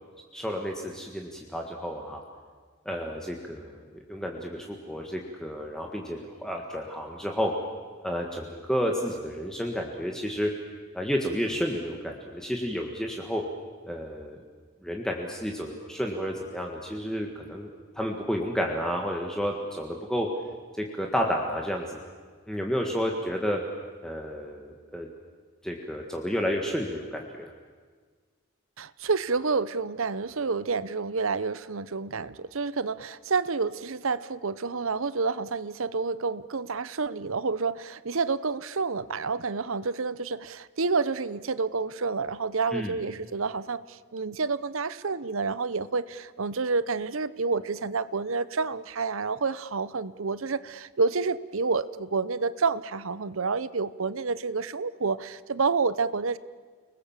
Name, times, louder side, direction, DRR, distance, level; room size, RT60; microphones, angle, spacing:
voice 1, 0.3-2.2 2.8-3.7 4.1-7.5 8.0-10.5 10.9-13.4 13.9-14.4 14.8-17.7 17.9-20.3 20.7-21.9 22.5-23.6 24.0-25.1 25.6-27.5 42.7-42.9, equal, 5° left, 0 dB, 1.8 m, -31 dB
voice 2, 28.8-56.4, right 4 dB, 70° right, 17 dB, 0.8 m, -29 dB
30.0 x 20.5 x 7.4 m, 1.5 s
head